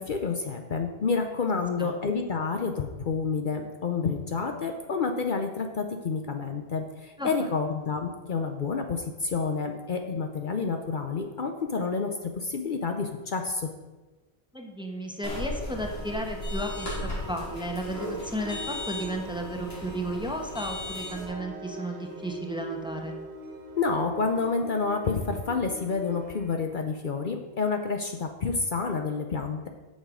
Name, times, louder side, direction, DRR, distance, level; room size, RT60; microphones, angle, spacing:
voice 1, 0.0-13.7 23.8-29.7, left 4 dB, 55° left, 4 dB, 0.9 m, -29 dB
voice 2, 7.2-7.5 14.5-23.1, right 1 dB, 5° right, 2 dB, 1.1 m, -34 dB
sound 1, 15.2-21.2, left 1 dB, 75° left, 3.7 m, -35 dB
sound 2, 17.8-26.6, right 1 dB, 80° right, 1.4 m, -44 dB
8.2 x 6.7 x 6.2 m, 1.2 s
omnidirectional pair, 1.1 m